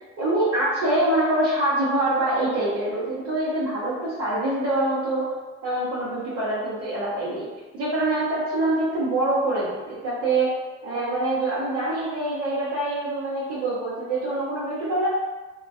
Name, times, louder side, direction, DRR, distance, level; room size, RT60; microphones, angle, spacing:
voice 1, 0.2-5.3 5.6-7.5 7.7-10.5 10.8-15.1, right 1 dB, 85° right, -10 dB, 0.7 m, -25 dB
3.0 x 2.2 x 2.5 m, 1.2 s
hypercardioid pair, 45°, 33 cm